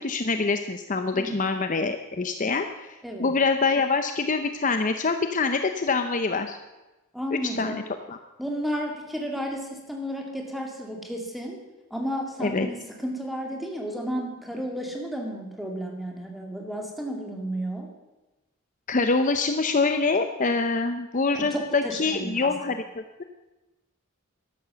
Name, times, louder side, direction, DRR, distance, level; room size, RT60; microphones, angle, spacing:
voice 1, 0.0-6.6 7.3-7.8 8.1-8.2 12.4-12.7 18.9-23.2, left 4 dB, 35° left, 7 dB, 0.6 m, -25 dB
voice 2, 7.1-7.8 8.4-11.6 11.9-17.9 21.3-22.7, equal, ahead, 0 dB, 2.4 m, -32 dB
13.0 x 11.5 x 6.9 m, 1.1 s
head